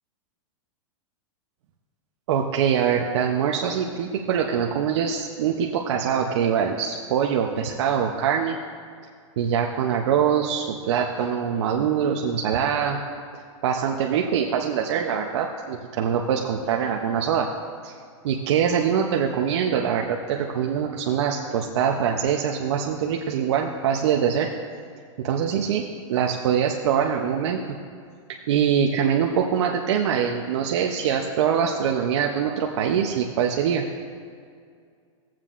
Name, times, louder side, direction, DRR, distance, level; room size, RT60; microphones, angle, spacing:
voice 1, 2.3-8.6 9.4-13.0 13.6-17.5 17.8-17.9 18.2-24.5 25.2-25.8 26.1-27.6 28.5-33.8, right 8 dB, 55° right, 1 dB, 0.6 m, -23 dB
16.5 x 7.4 x 2.4 m, 2.2 s
supercardioid pair, 165°, 17 cm